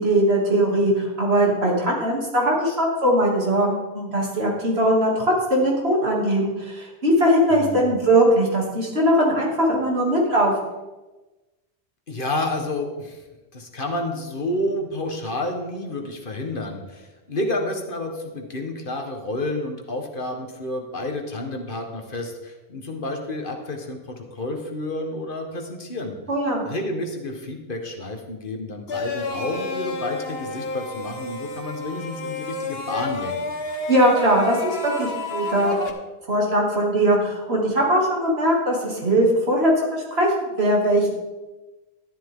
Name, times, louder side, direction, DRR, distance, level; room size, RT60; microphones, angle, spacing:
voice 1, 0.0-10.5 26.3-26.6 33.9-35.8 36.3-41.1, right 1 dB, 75° right, -2 dB, 3.0 m, -20 dB
voice 2, 7.5-7.9 12.1-13.2 13.5-26.2 26.6-33.5, left 1 dB, 55° left, 3 dB, 1.6 m, -30 dB
sound 1, 28.9-35.9, left 3 dB, 70° left, 1.4 m, -30 dB
12.5 x 11.5 x 3.8 m, 1.1 s
omnidirectional pair, 1.1 m